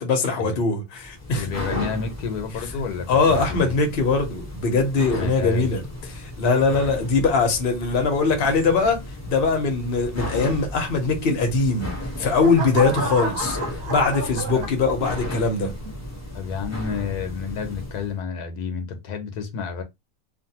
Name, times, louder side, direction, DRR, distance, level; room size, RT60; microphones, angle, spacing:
voice 1, 0.0-1.5 3.1-15.7, left 4 dB, 45° left, 0.9 m, -22 dB
Church Organ Stops Multi A, 0.9-18.1, left 1 dB, 15° left, 0.5 m, -35 dB
voice 2, 1.3-3.8 5.2-5.7 14.5-14.8 16.3-19.8, left 6 dB, 80° left, 1.2 m, -30 dB
sound 1, 11.7-15.3 15.8-16.2, right 2 dB, 75° right, 1.2 m, -31 dB
2.5 x 2.5 x 2.8 m
omnidirectional pair, 1.7 m